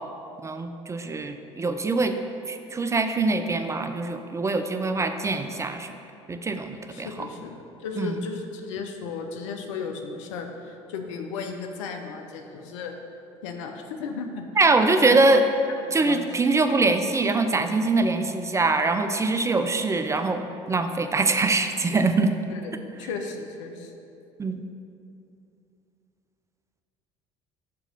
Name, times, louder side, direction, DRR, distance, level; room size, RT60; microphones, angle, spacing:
voice 1, 0.4-2.1 2.5-5.9 6.3-7.3 8.0-8.3 14.6-15.4 15.9-22.3 24.4-24.6, right 3 dB, 20° right, 7 dB, 0.3 m, -23 dB
voice 2, 6.9-13.0 13.4-14.4 15.0-15.2 15.9-16.3 22.5-22.7 23.0-23.9, left 5 dB, 75° left, 4 dB, 0.6 m, -35 dB
6.7 x 2.9 x 5.3 m, 2.6 s
hypercardioid pair, 65°, 16 cm